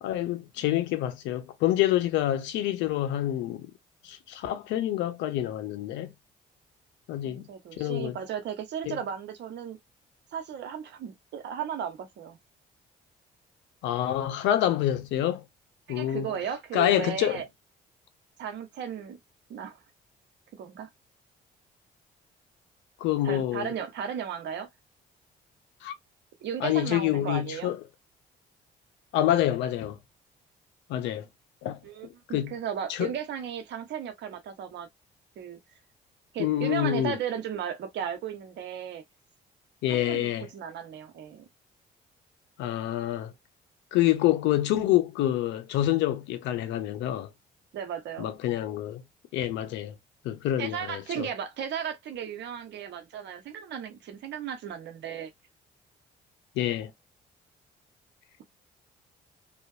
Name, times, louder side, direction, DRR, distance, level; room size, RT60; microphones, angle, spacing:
voice 1, 0.0-3.7 4.0-6.1 7.1-7.4 7.8-8.2 8.9-9.0 13.8-15.4 15.9-16.3 16.7-17.4 23.0-23.7 25.8-25.9 26.6-27.8 29.1-30.0 30.9-31.3 31.6-31.8 32.3-32.5 32.9-33.1 36.4-37.2 39.8-40.5 42.6-43.3 43.9-47.3 48.2-49.0 49.3-49.9 50.2-51.3 56.6-56.9, left 13 dB, 85° left, 0.6 m, -27 dB
voice 2, 7.2-9.8 10.3-12.4 15.9-17.4 18.4-19.2 19.5-19.8 20.5-20.9 23.2-24.7 26.4-27.7 31.8-34.9 35.4-35.6 36.3-39.0 39.9-41.5 47.7-48.3 50.6-55.3, right 8 dB, 70° right, 0.9 m, -35 dB
2.7 x 2.4 x 2.5 m
supercardioid pair, 65°, 19 cm